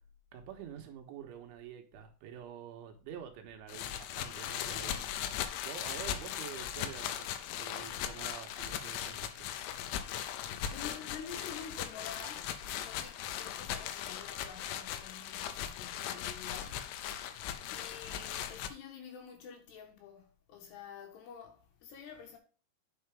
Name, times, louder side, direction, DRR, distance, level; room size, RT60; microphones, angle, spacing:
voice 1, 0.3-5.1 5.7-7.3 7.6-9.5, right 9 dB, 75° right, 3.5 m, -47 dB
sound 1, 3.7-18.7, left 10 dB, 85° left, 3.0 m, -39 dB
voice 2, 10.4-17.0 17.7-22.4, left 7 dB, 70° left, 2.9 m, -49 dB
9.5 x 5.7 x 3.4 m
omnidirectional pair, 5.7 m